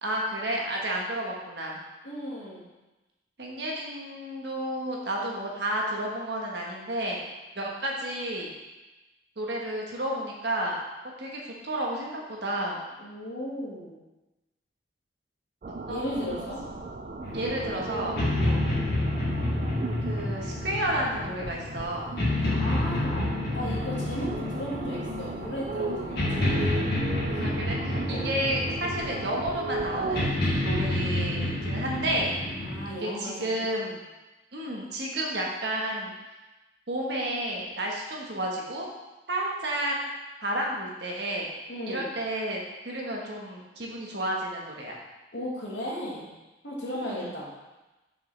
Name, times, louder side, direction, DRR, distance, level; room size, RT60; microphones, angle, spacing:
voice 1, 0.0-1.8 3.4-7.2 7.5-8.5 9.4-10.7 11.2-12.8 15.9-16.4 17.3-18.2 20.0-22.1 27.4-32.3 33.0-33.9 34.5-36.1 36.9-38.9 39.3-40.0 40.4-41.5 41.9-45.0 46.9-47.3, right 1 dB, 65° right, -2 dB, 1.3 m, -31 dB
voice 2, 2.0-2.7 13.0-13.9 15.9-16.6 18.4-18.6 22.5-26.8 27.3-27.4 28.1-28.3 32.6-33.9 41.7-42.1 45.3-46.3 46.6-47.5, equal, 80° left, -5 dB, 1.7 m, -36 dB
sound 1, 15.6-30.3, right 3 dB, 40° right, 0.4 m, -37 dB
sound 2, 17.2-32.8, left 1 dB, 60° left, 2.3 m, -29 dB
6.8 x 5.5 x 3.3 m, 1.1 s
head